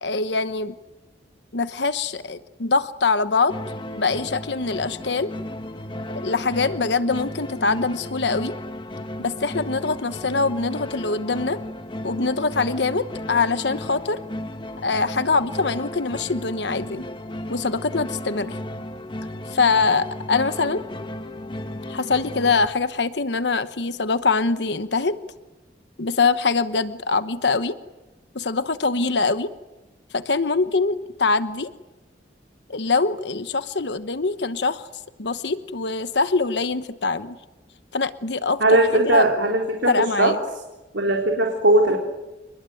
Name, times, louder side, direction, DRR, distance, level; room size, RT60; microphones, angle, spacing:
voice 1, 0.0-0.7 1.5-3.6 3.9-5.3 6.2-8.5 9.2-11.6 12.0-14.2 14.8-17.0 17.5-18.6 19.5-20.8 21.9-25.2 26.0-27.8 28.3-29.5 30.1-31.7 32.7-34.9 35.2-37.4 37.9-38.6 38.9-39.3 39.9-40.4, left 4 dB, 75° left, 12 dB, 1.1 m, -23 dB
sound 1, 3.5-22.7, left 1 dB, 25° left, 1.4 m, -34 dB
voice 2, 38.6-39.9 40.2-40.3 40.9-42.0, right 2 dB, 90° right, 1 dB, 3.9 m, -18 dB
29.0 x 21.0 x 9.3 m, 1.1 s
head